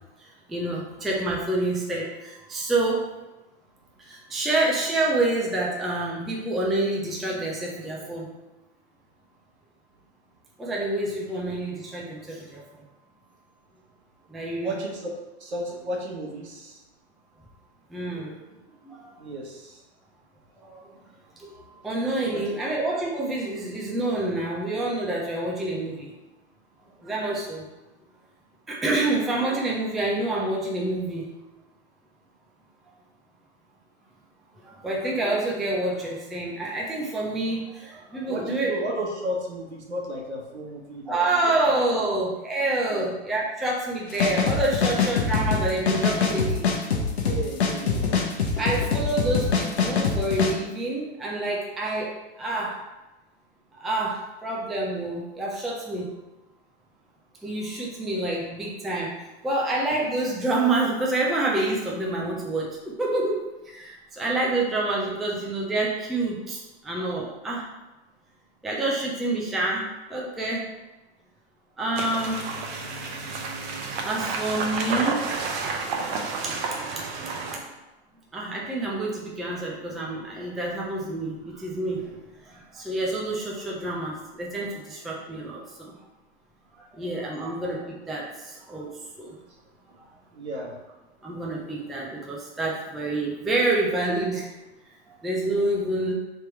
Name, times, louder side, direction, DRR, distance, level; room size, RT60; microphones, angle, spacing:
voice 1, 0.2-3.0 4.0-8.4 10.6-12.8 14.3-14.8 17.9-18.4 18.8-19.1 20.6-21.0 21.4-26.1 27.0-27.7 28.7-31.3 34.6-38.7 41.1-46.7 48.6-52.8 53.7-56.1 57.4-67.7 68.6-70.7 71.8-72.4 74.0-75.2 76.4-76.5 78.3-85.9 86.7-89.4 90.0-90.1 91.2-94.5 95.1-96.1, right 2 dB, ahead, -3 dB, 0.3 m, -28 dB
voice 2, 14.6-15.1 15.4-16.8 19.2-19.8 22.3-22.4 38.3-41.5 42.9-43.1 47.1-48.3 87.4-87.5 90.3-90.7, right 1 dB, 80° right, -1 dB, 1.3 m, -33 dB
sound 1, 44.1-50.5, left 5 dB, 70° left, 0.9 m, -24 dB
sound 2, 71.9-77.6, right 4 dB, 45° right, 0.8 m, -30 dB
3.5 x 2.9 x 4.6 m, 1.0 s
hypercardioid pair, 110°, 33 cm